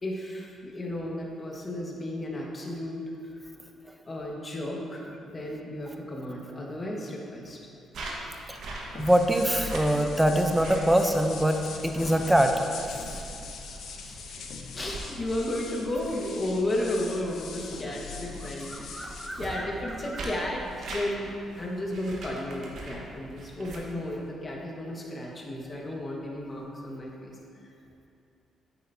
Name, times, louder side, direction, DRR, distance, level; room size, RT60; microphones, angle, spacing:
voice 1, 0.0-3.0 4.1-7.6 14.1-14.2 14.7-19.1 19.4-27.4, left 1 dB, 30° left, -2 dB, 1.5 m, -33 dB
sound 1, 7.9-24.3, right 2 dB, 70° right, 1.4 m, -43 dB
sound 2, 8.5-21.0, left 4 dB, 75° left, 0.8 m, -41 dB
voice 2, 8.9-12.5 18.7-19.7 20.1-20.2, right 1 dB, 5° right, 4 dB, 0.7 m, -24 dB
9.3 x 7.8 x 2.8 m, 2.6 s
cardioid pair, 90°, 0 cm